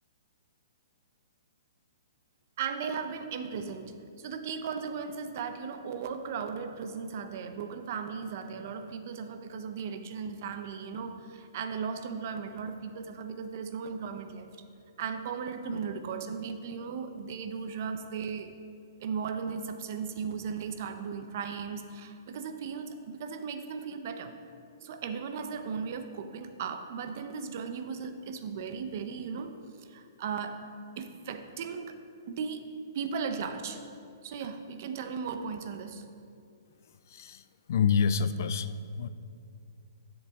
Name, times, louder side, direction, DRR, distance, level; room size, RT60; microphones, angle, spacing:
voice 1, 2.6-3.9 4.2-14.5 15.0-18.5 19.0-24.3 24.8-29.5 29.9-30.6 31.0-32.0 32.3-32.6 32.9-33.8 34.2-36.1, right 6 dB, 40° right, 8 dB, 0.7 m, -36 dB
voice 2, 37.1-37.4 37.7-38.7 39.0-39.1, left 6 dB, 50° left, 13 dB, 0.4 m, -26 dB
11.0 x 7.1 x 3.6 m, 2.4 s
hypercardioid pair, 165°, 2 cm